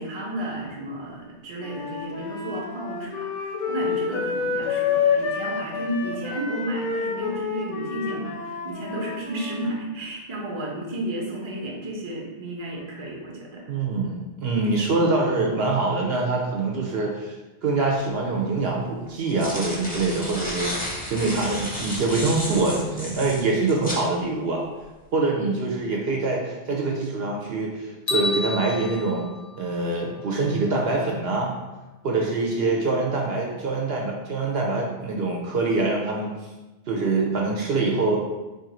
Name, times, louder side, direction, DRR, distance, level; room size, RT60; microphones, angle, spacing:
voice 1, 0.0-13.6, right 1 dB, 30° right, -2 dB, 0.7 m, -32 dB
Wind instrument woodwind instrument, 1.6-9.7, left 6 dB, 90° left, 0.9 m, -28 dB
voice 2, 13.7-17.4 17.6-24.7 25.1-29.3 29.6-31.5 32.0-36.4 36.9-38.2, right 3 dB, 65° right, -1 dB, 0.8 m, -24 dB
sound 1, 18.0-18.1 19.1-24.1, equal, 10° left, 0.5 m, -32 dB
sound 2, 28.1-30.3, left 2 dB, 60° left, 0.7 m, -31 dB
3.4 x 2.5 x 4.2 m, 1.1 s
omnidirectional pair, 1.2 m